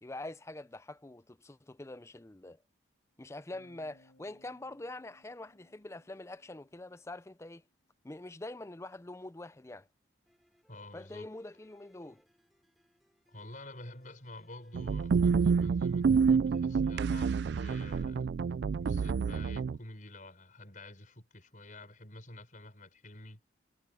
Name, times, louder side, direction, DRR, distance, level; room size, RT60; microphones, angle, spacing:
voice 1, 0.0-2.6 3.2-7.6 8.0-9.9 10.9-12.2, left 2 dB, 15° left, 0.5 m, -45 dB
Bass guitar, 3.5-7.5, left 1 dB, 85° left, 5.0 m, -66 dB
sound 1, 10.3-18.3, equal, ahead, 7.1 m, -72 dB
voice 2, 10.7-11.3 13.3-18.3 18.8-23.4, left 2 dB, 45° left, 5.8 m, -49 dB
sound 2, 14.7-19.8, right 5 dB, 60° right, 0.3 m, -28 dB
head